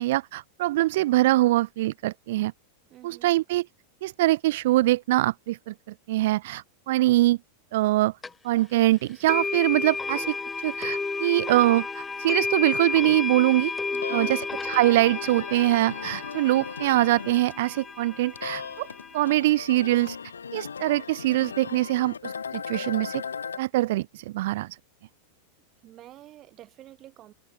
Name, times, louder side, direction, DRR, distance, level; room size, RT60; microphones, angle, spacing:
voice 1, 0.0-2.5 3.0-3.7 4.0-5.7 6.1-7.4 7.7-8.1 8.4-13.7 14.1-18.9 19.1-20.2 20.5-23.2 23.6-24.7, right 17 dB, 55° right, 0.5 m, -23 dB
voice 2, 2.9-3.3 13.9-14.6 25.8-27.3, right 14 dB, 35° right, 6.9 m, -47 dB
sound 1, 8.2-8.3 9.3-19.3, left 4 dB, 15° left, 0.4 m, -32 dB
sound 2, 13.6-23.6, left 6 dB, 70° left, 2.6 m, -38 dB
figure-of-eight pair, 90°, 0 cm